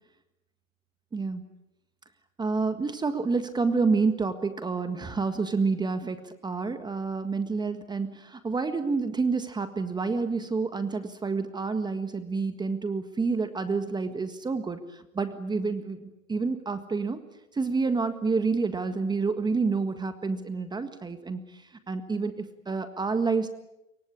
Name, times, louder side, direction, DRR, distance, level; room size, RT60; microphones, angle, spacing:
voice 1, 1.1-1.4 2.4-17.2 17.5-23.5, right 4 dB, 10° right, 9 dB, 1.7 m, -28 dB
27.0 x 24.0 x 8.8 m, 0.88 s
hypercardioid pair, 120°, 40 cm